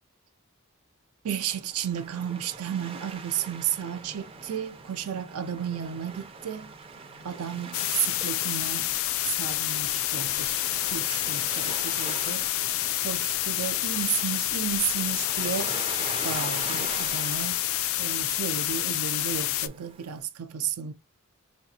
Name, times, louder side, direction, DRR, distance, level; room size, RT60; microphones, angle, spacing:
voice 1, 1.2-6.7 7.2-8.9 9.2-10.6 10.8-12.5 13.0-15.8 16.2-17.6 18.0-20.9, right 9 dB, 85° right, 0.5 m, -33 dB
Waves surf, 1.4-20.2, right 4 dB, 25° right, 0.4 m, -43 dB
sound 1, 1.5-12.3, left 2 dB, 90° left, 1.2 m, -56 dB
sound 2, 7.7-19.7, left 14 dB, 65° left, 0.3 m, -28 dB
4.9 x 2.4 x 2.7 m
head